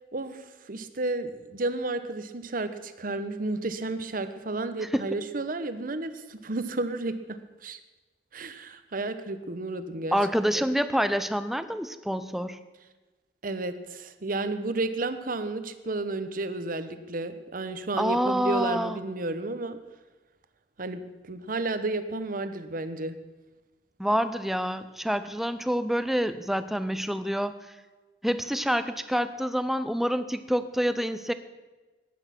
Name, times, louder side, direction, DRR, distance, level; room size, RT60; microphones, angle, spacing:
voice 1, 0.1-7.4 7.6-7.8 8.3-10.2 10.5-10.7 13.4-19.8 20.8-23.2, right 2 dB, 50° right, 10 dB, 1.0 m, -32 dB
voice 2, 10.1-12.6 18.0-19.0 24.0-27.5 28.2-31.3, equal, ahead, 11 dB, 0.6 m, -27 dB
15.5 x 10.5 x 5.9 m, 1.2 s
head